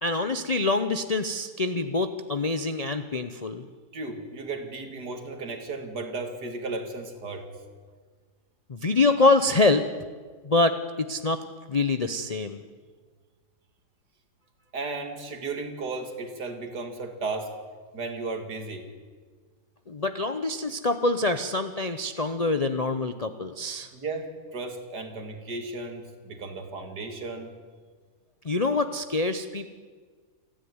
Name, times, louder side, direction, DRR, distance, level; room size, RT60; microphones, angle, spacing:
voice 1, 0.0-3.7 8.7-9.8 10.4-11.4 11.7-12.6 19.9-23.9 28.4-29.7, left 3 dB, 45° left, 9 dB, 0.5 m, -25 dB
voice 2, 3.9-7.4 14.7-17.5 17.9-18.9 23.9-27.5, right 3 dB, 75° right, 5 dB, 2.8 m, -35 dB
28.0 x 10.0 x 9.5 m, 1.5 s
omnidirectional pair, 1.8 m